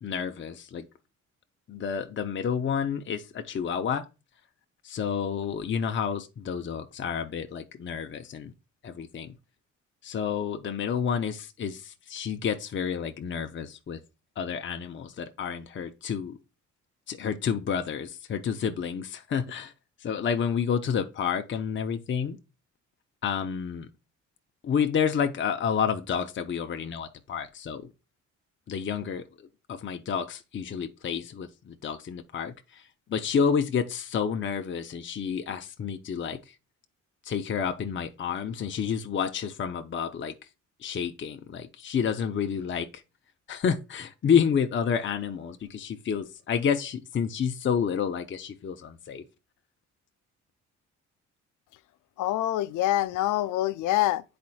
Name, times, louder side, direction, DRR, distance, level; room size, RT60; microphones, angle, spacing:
voice 1, 0.0-0.8 1.7-4.0 4.8-8.5 8.8-9.3 10.0-14.0 14.4-16.4 17.1-19.7 20.0-22.4 23.2-23.9 24.6-27.9 28.7-32.8 33.1-36.4 37.2-40.3 40.8-42.9 43.5-49.2, left 7 dB, 40° left, 0.7 m, -29 dB
voice 2, 52.2-54.2, left 14 dB, 85° left, 0.5 m, -25 dB
10.5 x 4.3 x 2.3 m
cardioid pair, 90°, 30 cm